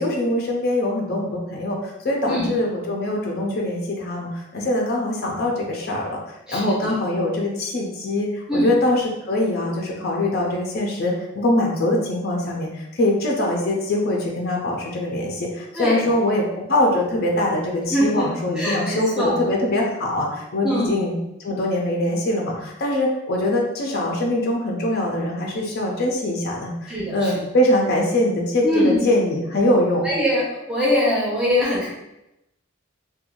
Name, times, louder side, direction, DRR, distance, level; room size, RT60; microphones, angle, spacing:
voice 1, 0.0-6.2 6.5-21.1 21.4-30.1, left 1 dB, 50° left, -1 dB, 0.5 m, -23 dB
voice 2, 6.5-6.9 8.5-8.7 15.7-16.1 17.9-18.3 18.6-19.4 20.6-20.9 26.9-27.4 28.6-29.0 30.0-31.9, left 1 dB, 5° right, -8 dB, 0.7 m, -22 dB
2.5 x 2.2 x 2.9 m, 0.89 s
head